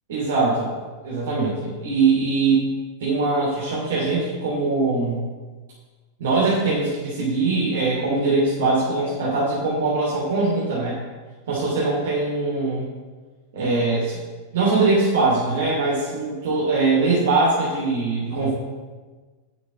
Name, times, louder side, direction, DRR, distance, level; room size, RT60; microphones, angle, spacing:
voice 1, 0.1-0.7 1.0-2.7 3.0-5.3 6.2-11.0 11.5-12.9 13.5-14.2 14.5-18.5, right 3 dB, 60° right, -6 dB, 2.8 m, -22 dB
9.3 x 6.1 x 7.3 m, 1.4 s
figure-of-eight pair, 90°, 0 cm